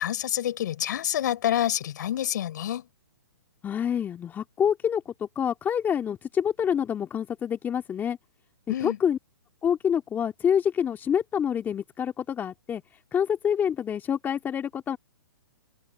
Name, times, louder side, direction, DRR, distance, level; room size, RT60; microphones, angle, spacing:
voice 1, 0.0-2.9 8.7-9.0, left 11 dB, 55° left, 5.7 m, -27 dB
voice 2, 3.6-8.2 8.8-9.2 9.6-12.8 13.1-15.0, left 8 dB, 15° left, 2.1 m, -27 dB
open air
hypercardioid pair, 130°, 12 cm